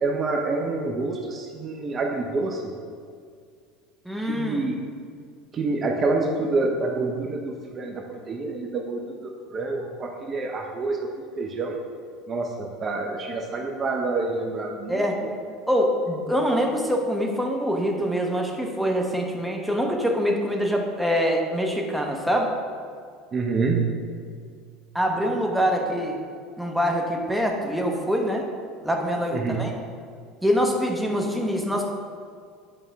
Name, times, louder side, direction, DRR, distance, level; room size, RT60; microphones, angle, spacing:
voice 1, 0.0-2.6 4.2-4.9 5.5-11.0 11.4-11.8 12.3-15.3 23.3-23.9 29.3-29.7, right 3 dB, 35° right, 2 dB, 0.8 m, -27 dB
voice 2, 4.0-4.7 14.9-15.1 15.7-22.5 24.9-26.2 26.6-28.5 28.8-29.7 30.4-31.9, equal, 5° right, 1 dB, 1.1 m, -24 dB
8.7 x 5.4 x 3.5 m, 2.1 s
hypercardioid pair, 75°, 0 cm